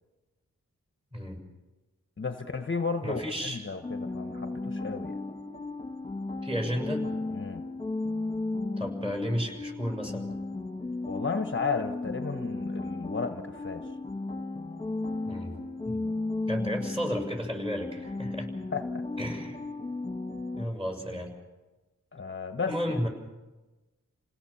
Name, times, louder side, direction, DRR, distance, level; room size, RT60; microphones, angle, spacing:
voice 1, 2.2-5.2 7.3-7.7 11.0-13.9 18.7-19.0 22.1-23.0, left 4 dB, 35° left, 6 dB, 1.1 m, -33 dB
voice 2, 3.0-3.6 6.4-7.0 8.8-10.3 15.2-15.5 15.8-16.0 16.5-18.5 19.2-19.6 20.5-21.3 22.7-23.1, equal, 15° right, 2 dB, 6.7 m, -33 dB
sound 1, 3.8-20.6, left 2 dB, 15° left, 1.9 m, -35 dB
29.5 x 17.5 x 7.1 m, 1.1 s
wide cardioid pair, 95°, 33 cm